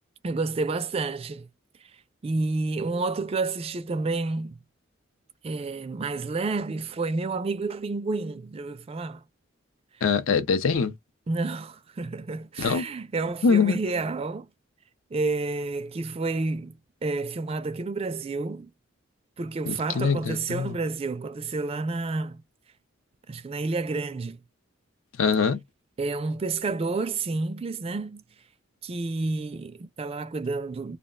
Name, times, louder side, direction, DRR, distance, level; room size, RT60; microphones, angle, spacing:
voice 1, 0.2-1.5 2.2-4.6 5.4-9.2 11.3-14.5 15.1-18.7 19.4-22.4 23.3-24.4 26.0-28.2 28.8-31.0, right 3 dB, 30° right, 0.3 m, -30 dB
voice 2, 10.0-10.9 12.6-12.9 13.4-13.8 19.7-20.8 25.2-25.6, left 5 dB, 80° left, 0.6 m, -23 dB
2.3 x 2.1 x 3.6 m
head